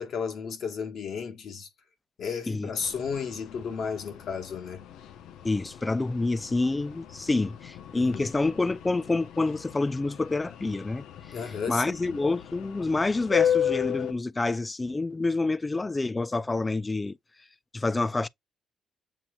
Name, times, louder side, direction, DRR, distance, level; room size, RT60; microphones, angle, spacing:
voice 1, 0.0-1.7 2.2-4.9 7.9-8.3 11.3-12.2, left 6 dB, 65° left, 1.3 m, -33 dB
sound 1, 2.8-14.1, left 9 dB, 85° left, 0.5 m, -34 dB
voice 2, 5.4-11.0 11.7-17.2 17.7-18.3, left 3 dB, 20° left, 0.3 m, -27 dB
7.4 x 2.8 x 2.3 m
cardioid pair, 90°, 0 cm